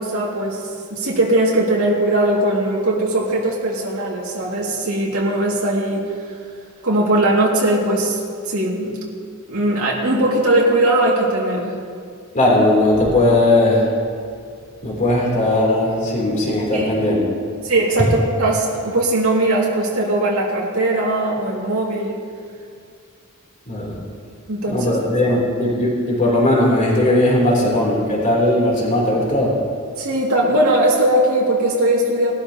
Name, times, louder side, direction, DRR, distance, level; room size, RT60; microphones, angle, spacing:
voice 1, 0.0-6.0 6.8-8.2 8.5-9.0 9.5-11.7 16.7-17.0 17.6-22.2 24.5-24.9 25.3-25.4 30.0-32.3, right 1 dB, 85° right, -4 dB, 2.3 m, -19 dB
voice 2, 12.3-13.9 14.8-17.4 23.7-23.9 24.7-29.6, left 1 dB, 35° left, -4 dB, 3.3 m, -18 dB
20.5 x 12.5 x 2.9 m, 2.2 s
head